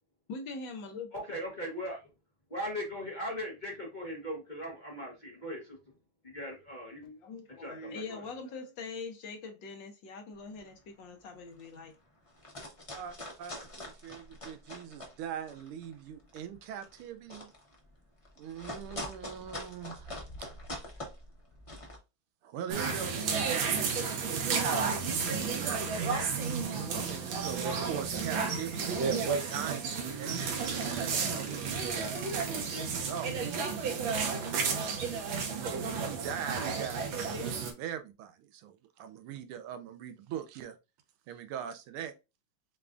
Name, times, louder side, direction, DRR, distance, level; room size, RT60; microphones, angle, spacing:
voice 1, 0.3-1.1 7.0-11.9, left 4 dB, 70° left, 1.4 m, -43 dB
voice 2, 1.1-2.0 2.5-5.8 6.2-7.0 7.6-8.2, equal, 35° left, 0.8 m, -39 dB
sound 1, 10.5-10.8 11.2-11.3 11.5-11.9 12.3-15.2 15.5-22.0, left 1 dB, 50° left, 0.3 m, -44 dB
voice 3, 12.9-17.5 18.4-20.5 22.4-25.9 26.7-33.3 34.0-34.3 34.7-35.1 35.7-40.8 41.3-42.1, right 9 dB, 85° right, 1.5 m, -42 dB
sound 2, 22.7-37.7, right 5 dB, 70° right, 1.6 m, -32 dB
6.8 x 2.3 x 2.5 m
omnidirectional pair, 2.3 m